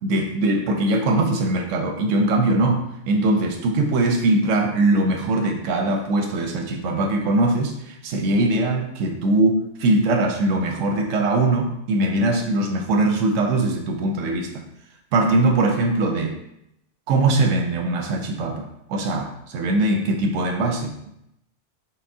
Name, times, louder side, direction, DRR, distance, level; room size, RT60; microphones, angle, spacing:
voice 1, 0.0-14.6 15.1-16.4 17.1-21.1, right 2 dB, 80° right, 4 dB, 1.0 m, -21 dB
5.5 x 2.2 x 2.7 m, 0.78 s
omnidirectional pair, 1.3 m